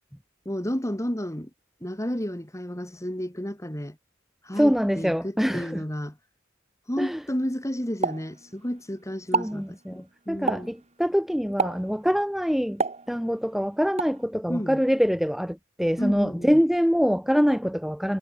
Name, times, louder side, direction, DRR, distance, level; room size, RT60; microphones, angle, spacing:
voice 1, 0.5-1.5 1.8-4.0 4.4-6.2 6.9-10.7 14.5-14.8 16.0-16.6, equal, 15° left, 3.5 m, -31 dB
voice 2, 4.5-5.8 7.0-7.2 9.3-12.8 13.1-18.2, equal, ahead, 2.1 m, -24 dB
Explosion, 8.0-8.9 9.2-9.6 10.5-10.8 11.6-12.0 12.8-13.5 14.0-14.2, right 4 dB, 30° right, 3.7 m, -28 dB
head